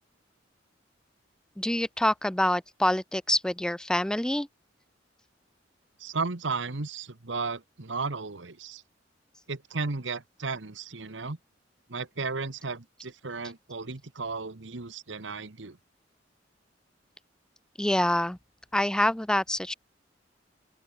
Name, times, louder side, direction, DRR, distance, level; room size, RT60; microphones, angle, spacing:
voice 1, 1.6-4.5 17.8-18.4 18.7-19.7, left 1 dB, 5° left, 0.4 m, -26 dB
voice 2, 6.0-8.8 9.5-11.4 11.9-15.8, right 4 dB, 80° right, 1.3 m, -34 dB
open air
head